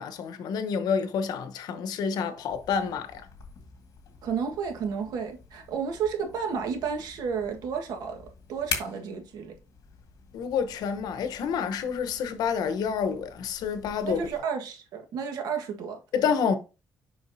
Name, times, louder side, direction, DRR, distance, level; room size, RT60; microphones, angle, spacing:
voice 1, 0.0-3.2 10.3-14.3 16.1-16.6, left 6 dB, 80° left, 1.0 m, -28 dB
sound 1, 2.5-14.4, left 6 dB, 65° left, 1.9 m, -43 dB
voice 2, 4.2-8.2 8.5-9.5 14.0-16.0, right 6 dB, 80° right, 1.6 m, -31 dB
7.1 x 5.7 x 2.7 m
cardioid pair, 155°, 7 cm